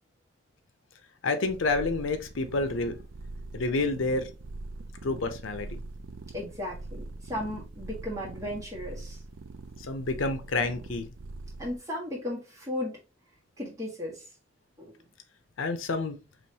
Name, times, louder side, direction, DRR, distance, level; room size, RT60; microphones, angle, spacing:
voice 1, 1.2-3.0 3.5-4.3 5.0-5.8 9.9-11.0 15.6-16.2, left 3 dB, 90° left, 0.7 m, -29 dB
sound 1, 1.5-11.8, right 3 dB, 85° right, 0.5 m, -43 dB
voice 2, 6.3-9.2 11.6-13.0 13.6-14.2 14.8-14.9, left 1 dB, 15° right, 1.6 m, -35 dB
5.1 x 3.0 x 2.8 m
head